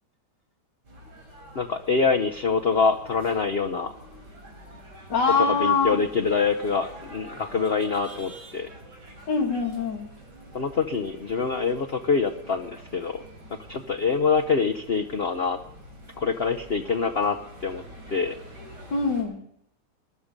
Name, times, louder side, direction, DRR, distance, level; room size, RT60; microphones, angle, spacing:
sound 1, 0.8-19.2, right 1 dB, 55° right, 4.8 m, -46 dB
voice 1, 1.5-3.9 5.4-8.7 10.5-13.2 13.7-15.6 16.2-17.8 18.1-18.4, left 5 dB, 85° left, 5 dB, 0.5 m, -25 dB
voice 2, 5.1-6.0 9.3-10.1 18.9-19.4, left 4 dB, 60° left, 3 dB, 2.5 m, -23 dB
20.0 x 11.0 x 5.2 m, 0.72 s
omnidirectional pair, 2.1 m